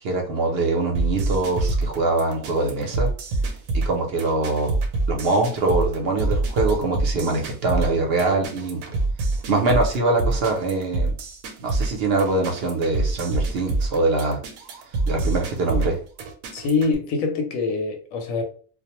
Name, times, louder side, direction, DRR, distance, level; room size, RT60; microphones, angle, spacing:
voice 1, 0.0-3.1 3.7-4.8 5.1-8.9 9.5-11.1 11.6-14.4 15.1-16.0, right 3 dB, 60° right, 0.7 m, -23 dB
sound 1, 0.9-16.9, right 2 dB, 85° right, 1.0 m, -26 dB
voice 2, 16.5-18.4, left 4 dB, 90° left, 1.0 m, -24 dB
2.4 x 2.0 x 2.8 m
omnidirectional pair, 1.4 m